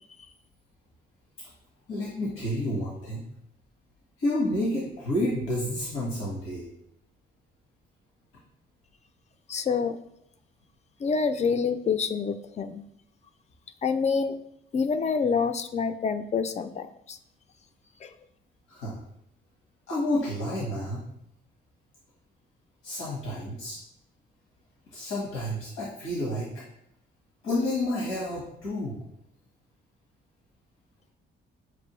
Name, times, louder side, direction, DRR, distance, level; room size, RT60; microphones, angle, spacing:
voice 1, 1.9-3.2 4.2-6.6 18.7-19.0 19.9-21.0 22.8-23.8 24.9-26.5 27.4-29.0, left 1 dB, 90° left, -5 dB, 1.3 m, -30 dB
voice 2, 9.5-10.0 11.0-12.8 13.8-14.4 14.7-17.2 18.0-18.1, left 5 dB, 35° left, 10 dB, 0.4 m, -27 dB
6.1 x 2.5 x 3.0 m, 0.75 s
cardioid pair, 90°, 20 cm